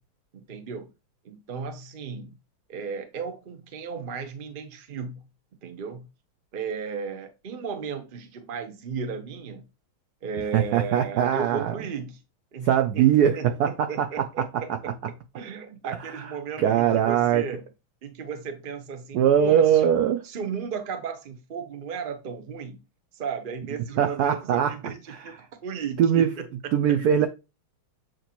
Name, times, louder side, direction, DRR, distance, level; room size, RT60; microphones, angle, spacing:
voice 1, 0.3-0.9 1.2-2.3 2.7-5.2 5.6-6.1 6.5-9.6 10.2-12.2 12.5-17.6 18.0-19.9 20.2-22.8 23.1-25.4 25.6-26.5, right 6 dB, 45° right, 0.6 m, -35 dB
voice 2, 10.5-11.7 12.6-13.9 16.6-17.4 19.1-20.2 24.0-24.7 26.0-26.3 26.7-27.3, right 9 dB, 75° right, 0.9 m, -21 dB
7.8 x 3.1 x 4.3 m
omnidirectional pair, 2.3 m